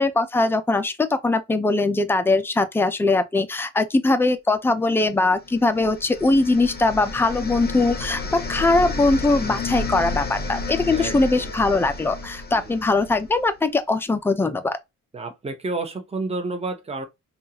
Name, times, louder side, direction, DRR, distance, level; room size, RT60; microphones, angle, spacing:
voice 1, 0.0-14.8, left 2 dB, 10° left, 0.4 m, -21 dB
sound 1, 5.5-13.4, left 3 dB, 30° left, 0.7 m, -31 dB
voice 2, 10.8-11.5 12.5-12.7 15.1-17.0, right 3 dB, 20° right, 0.8 m, -30 dB
5.3 x 2.4 x 2.8 m
wide cardioid pair, 175°, 31 cm